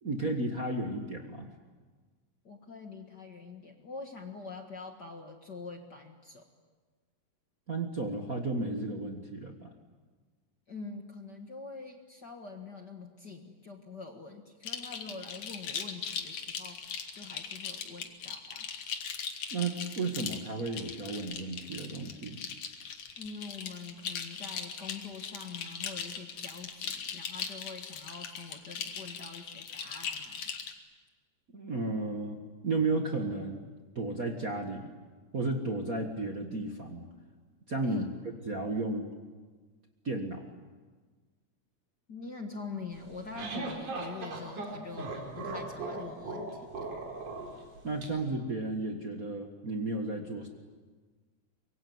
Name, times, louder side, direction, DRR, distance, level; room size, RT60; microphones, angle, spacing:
voice 1, 0.0-1.5 7.7-9.7 19.5-22.4 31.5-33.6 33.9-34.9 35.3-37.1 37.7-39.1 40.0-40.5 47.8-50.5, right 2 dB, 35° right, 3 dB, 1.7 m, -33 dB
voice 2, 2.4-6.5 10.7-18.7 23.2-30.5 37.8-38.1 42.1-46.9, left 4 dB, 40° left, 4 dB, 1.8 m, -45 dB
sound 1, 14.6-30.7, left 7 dB, 70° left, 3.0 m, -39 dB
sound 2, 43.0-48.1, right 2 dB, 80° right, 5.5 m, -38 dB
25.0 x 23.0 x 9.5 m, 1.4 s
omnidirectional pair, 3.5 m